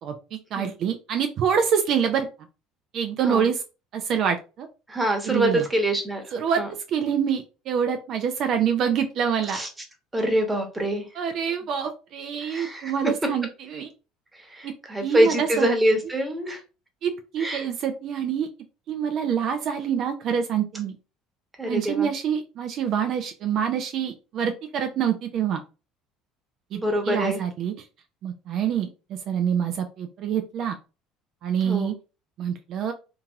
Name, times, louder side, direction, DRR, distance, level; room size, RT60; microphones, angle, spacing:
voice 1, 0.0-2.3 2.9-3.6 3.9-4.7 5.3-5.7 6.3-6.6 6.9-9.6 11.1-13.9 14.6-14.7 15.0-15.7 17.0-18.5 18.9-20.9 21.6-25.6 26.7-27.7 28.2-30.8 31.4-31.9 32.4-32.9, right 8 dB, 55° right, 6 dB, 0.4 m, -26 dB
voice 2, 4.9-6.2 6.6-6.7 9.5-9.7 10.1-11.0 12.4-13.1 14.5-16.6 17.4-17.6 21.6-22.1 26.7-27.4 31.6-31.9, right 1 dB, 15° right, 3 dB, 1.0 m, -25 dB
2.8 x 2.7 x 2.3 m, 0.31 s
hypercardioid pair, 65°, 0 cm